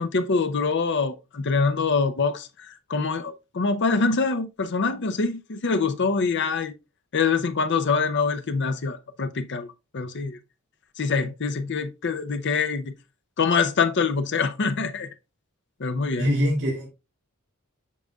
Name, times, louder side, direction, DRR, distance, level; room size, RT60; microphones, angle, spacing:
voice 1, 0.0-6.7 7.1-9.7 9.9-10.4 11.0-12.9 13.4-15.1 15.8-16.3, left 4 dB, 55° left, 0.7 m, -25 dB
voice 2, 16.2-16.9, equal, 55° right, 2.5 m, -23 dB
8.5 x 5.2 x 2.3 m
head